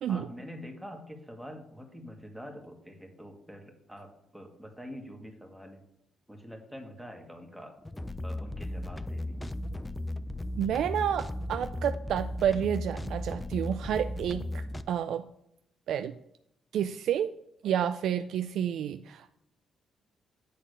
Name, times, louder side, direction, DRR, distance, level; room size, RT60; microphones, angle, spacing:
voice 1, 0.1-5.8 6.3-7.7 8.2-9.4, equal, 5° right, 2 dB, 1.6 m, -45 dB
sound 1, 7.8-14.8, left 1 dB, 15° left, 0.4 m, -36 dB
voice 2, 10.6-14.5 14.9-15.2 15.9-16.1 16.7-17.3 17.6-19.4, right 9 dB, 75° right, 9 dB, 0.3 m, -30 dB
8.3 x 3.8 x 6.4 m, 0.79 s
cardioid pair, 90°, 0 cm